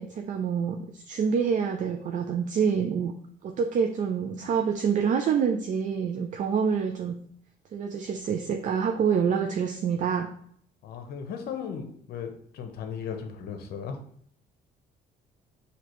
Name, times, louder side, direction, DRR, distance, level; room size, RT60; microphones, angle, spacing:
voice 1, 0.0-3.1 3.4-7.2 7.7-10.3, right 6 dB, 50° right, 4 dB, 0.5 m, -27 dB
voice 2, 10.8-14.0, left 7 dB, 70° left, 5 dB, 0.9 m, -36 dB
6.0 x 2.9 x 3.0 m, 0.63 s
cardioid pair, 110°, 17 cm